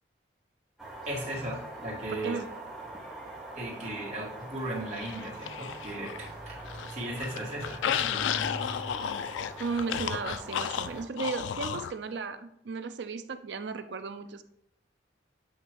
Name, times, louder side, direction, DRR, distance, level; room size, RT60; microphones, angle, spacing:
sound 1, 0.8-11.0, right 2 dB, ahead, 1.2 m, -43 dB
voice 1, 1.1-2.4 3.5-6.6 6.9-8.4, right 1 dB, 40° right, -4 dB, 1.9 m, -37 dB
voice 2, 2.1-2.4 9.6-14.4, right 4 dB, 70° right, 10 dB, 0.5 m, -35 dB
sound 2, 4.9-6.3 6.6-11.9, left 8 dB, 85° left, 0.3 m, -33 dB
7.9 x 2.9 x 4.6 m, 0.76 s
head